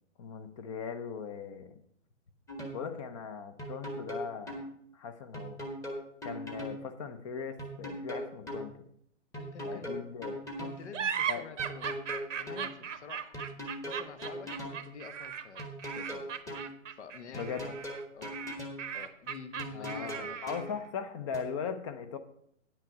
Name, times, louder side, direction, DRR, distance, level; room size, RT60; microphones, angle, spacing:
voice 1, 0.2-1.8 2.7-4.7 4.9-5.6 6.2-8.9 9.6-10.5 11.3-11.5 17.3-17.7 19.7-22.2, left 6 dB, 25° left, 9 dB, 0.6 m, -39 dB
sound 1, 2.5-2.8 3.6-4.7 5.3-6.8 7.6-8.7 9.3-10.8 11.6-12.7 13.3-14.8 15.6-16.7 17.3-18.8 19.6-20.7 21.3-21.4, equal, 10° left, 1.2 m, -39 dB
voice 2, 9.3-9.9 10.6-12.1 12.3-13.4 13.8-16.3 16.7-17.7 18.1-18.4 18.9-20.4, left 6 dB, 65° left, 10 dB, 1.2 m, -49 dB
sound 2, 10.9-20.8, right 8 dB, 75° right, 0.9 m, -38 dB
9.4 x 9.0 x 4.7 m, 0.68 s
hypercardioid pair, 140°, 38 cm